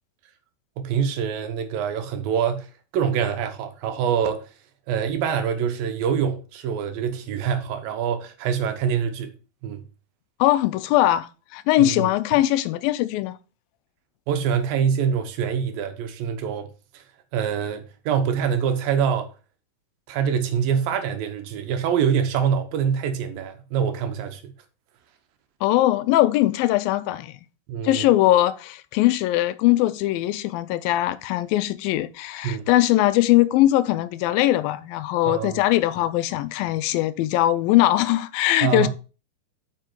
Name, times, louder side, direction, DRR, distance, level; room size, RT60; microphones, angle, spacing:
voice 1, 0.8-4.5 4.9-9.3 9.6-9.8 11.8-12.1 14.3-17.0 17.3-19.3 20.1-24.5 27.7-28.1 32.4-32.7 35.3-35.6 38.6-38.9, right 7 dB, 80° right, 2.8 m, -25 dB
voice 2, 10.4-13.4 25.6-27.4 27.8-38.9, left 15 dB, 90° left, 2.4 m, -21 dB
7.6 x 5.7 x 4.6 m
omnidirectional pair, 4.1 m